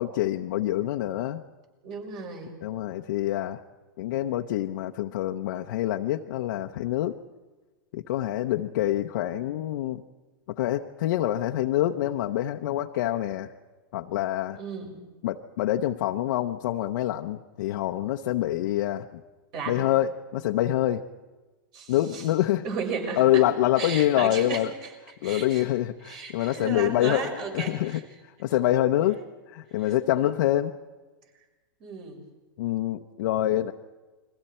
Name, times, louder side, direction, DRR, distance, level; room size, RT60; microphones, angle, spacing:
voice 1, 0.0-1.4 2.6-3.6 4.0-7.2 7.9-10.0 10.5-13.5 13.9-14.6 15.2-19.2 19.7-21.0 21.9-22.6 23.2-24.7 25.2-28.0 28.4-29.2 29.5-30.7 32.6-33.7, left 13 dB, 65° left, 2 dB, 0.8 m, -26 dB
voice 2, 1.8-2.5 14.5-15.0 19.5-19.8 21.7-22.3 22.6-23.5 23.8-24.9 25.2-25.6 26.0-28.0 29.8-30.3 31.8-32.3, right 5 dB, 40° right, 2 dB, 6.0 m, -35 dB
29.5 x 22.5 x 4.4 m, 1.2 s
hypercardioid pair, 125°, 11 cm